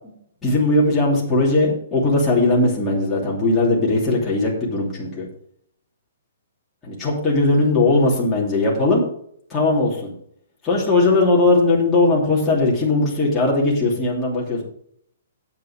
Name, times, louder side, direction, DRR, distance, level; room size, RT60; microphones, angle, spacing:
voice 1, 0.4-5.3 6.8-9.0 9.5-10.1 10.6-14.6, left 2 dB, 10° left, -6 dB, 2.9 m, -19 dB
9.3 x 8.6 x 5.0 m, 0.67 s
hypercardioid pair, 180°, 0 cm